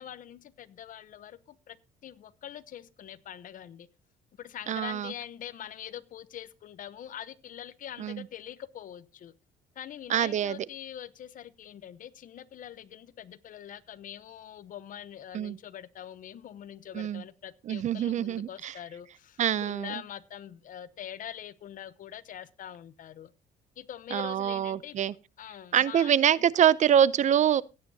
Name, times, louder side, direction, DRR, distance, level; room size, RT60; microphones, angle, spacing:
voice 1, 0.0-1.8 2.0-3.9 4.4-9.3 9.7-23.3 23.8-25.0 25.4-26.3, left 10 dB, 55° left, 0.9 m, -44 dB
voice 2, 4.7-5.1 8.0-8.2 10.1-10.7 15.3-15.6 16.9-17.2 17.7-18.7 19.4-19.9 24.1-25.1 25.7-27.6, right 9 dB, 45° right, 0.5 m, -25 dB
16.0 x 9.4 x 2.8 m
cardioid pair, 110°, 17 cm